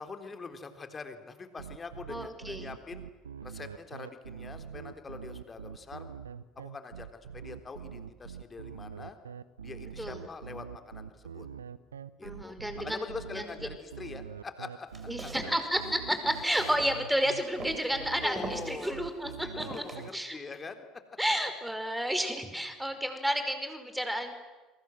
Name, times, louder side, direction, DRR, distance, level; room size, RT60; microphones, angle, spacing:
voice 1, 0.0-3.0 3.4-6.1 6.6-9.2 9.6-11.5 12.2-15.5 18.2-19.0 19.4-20.9, left 4 dB, 25° left, 8 dB, 3.7 m, -43 dB
sound 1, 1.6-20.1, right 7 dB, 80° right, 0.9 m, -44 dB
voice 2, 2.1-2.7 10.0-10.2 12.2-13.0 13.3-13.5 15.1-19.8 20.1-20.4 21.2-24.3, equal, 5° right, 8 dB, 5.2 m, -31 dB
Walk footsteps, 14.9-17.2 17.6-17.9 18.4-18.9 19.6-20.1, right 3 dB, 25° right, 5.2 m, -43 dB
29.5 x 23.0 x 7.8 m, 1.2 s
figure-of-eight pair, 60°, 0 cm